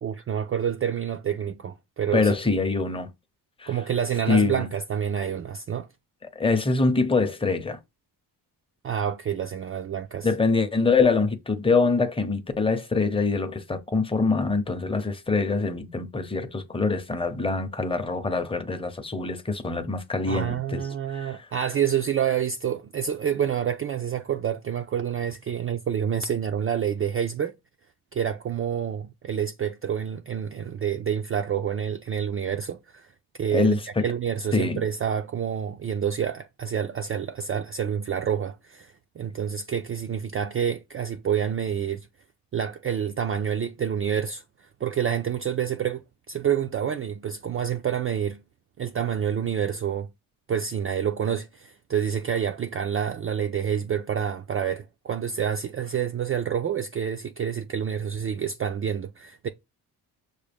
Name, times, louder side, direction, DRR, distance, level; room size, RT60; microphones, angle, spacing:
voice 1, 0.0-2.3 3.7-5.9 8.8-10.3 20.3-27.5 28.1-33.1 33.4-42.1 42.5-48.4 48.8-50.1 50.5-59.5, right 8 dB, 35° right, 0.4 m, -28 dB
voice 2, 2.1-3.1 3.6-3.7 4.3-4.7 6.4-7.8 10.2-20.8 21.1-21.4 33.5-34.1 34.5-34.8, left 4 dB, 15° left, 0.7 m, -24 dB
6.3 x 2.1 x 3.4 m
cardioid pair, 100°, 41 cm